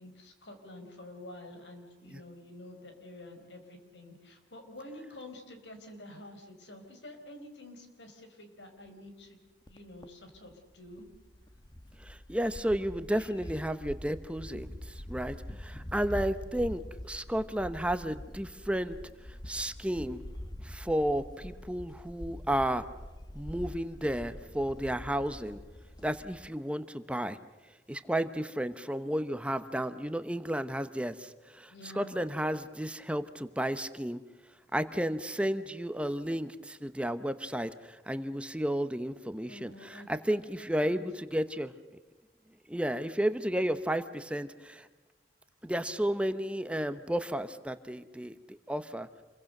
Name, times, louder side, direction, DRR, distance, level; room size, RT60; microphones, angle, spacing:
voice 1, 0.0-9.4 9.7-11.1 31.7-32.2 39.5-41.0, left 1 dB, 85° left, 6 dB, 4.6 m, -49 dB
sound 1, 8.9-9.0 9.7-9.8 10.0-10.1 10.3-26.5, left 1 dB, 25° left, 1.1 m, -45 dB
voice 2, 12.0-19.0 19.3-20.2 20.6-22.8 23.3-25.6 26.0-27.4 27.9-34.2 34.7-41.7 42.7-44.9 45.6-49.1, equal, 5° right, 11 dB, 0.8 m, -32 dB
28.0 x 22.5 x 6.6 m, 1.2 s
head